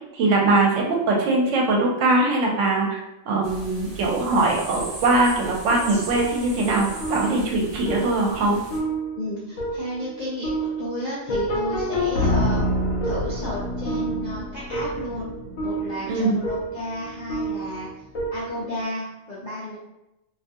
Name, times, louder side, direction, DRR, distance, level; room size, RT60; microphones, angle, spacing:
voice 1, 0.1-3.0 3.3-8.6 16.1-16.4, right 2 dB, 70° right, 0 dB, 0.9 m, -21 dB
sound 1, 3.4-8.8, right 1 dB, 35° right, 0.4 m, -38 dB
sound 2, 5.7-18.8, right 1 dB, 75° left, 1.1 m, -28 dB
voice 2, 9.2-12.6 13.0-15.3 15.6-17.9 18.3-19.8, left 1 dB, 60° left, -7 dB, 0.4 m, -32 dB
2.4 x 2.4 x 2.6 m, 0.91 s
omnidirectional pair, 1.4 m